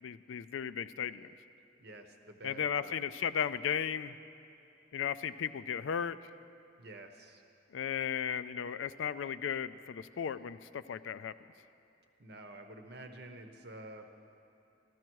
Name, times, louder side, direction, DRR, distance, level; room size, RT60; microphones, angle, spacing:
voice 1, 0.0-1.3 2.4-4.2 4.9-6.2 7.7-11.3, left 8 dB, 90° left, 14 dB, 0.4 m, -35 dB
voice 2, 1.8-3.1 6.8-7.4 12.2-14.1, right 2 dB, 60° right, 5 dB, 0.9 m, -49 dB
14.0 x 13.0 x 4.6 m, 2.7 s
head